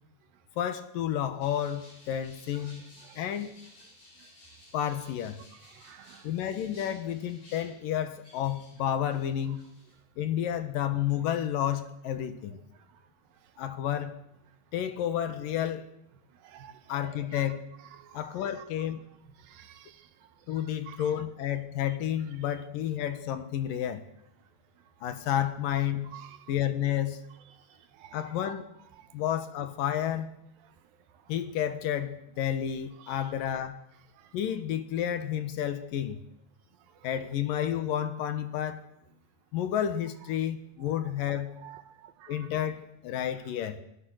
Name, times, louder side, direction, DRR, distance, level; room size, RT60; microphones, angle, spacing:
voice 1, 0.6-2.8 3.2-3.5 4.7-5.4 6.2-9.6 10.2-12.6 13.6-14.2 14.7-15.9 16.9-17.6 18.1-19.0 20.5-24.0 25.0-26.2 26.5-27.2 28.1-28.7 29.1-30.3 31.3-33.8 34.3-36.2 37.0-38.9 39.5-41.5 42.3-43.8, left 10 dB, 75° left, 3.0 m, -31 dB
sound 1, 1.4-8.8 9.1-9.9, left 1 dB, 45° left, 7.7 m, -56 dB
voice 2, 5.8-6.2 16.4-17.4 18.0-18.2 19.5-20.0 20.9-21.0 26.1-26.4 28.0-28.6 33.0-33.2 41.6-42.5, right 10 dB, 80° right, 2.9 m, -50 dB
27.5 x 17.0 x 6.4 m
omnidirectional pair, 4.1 m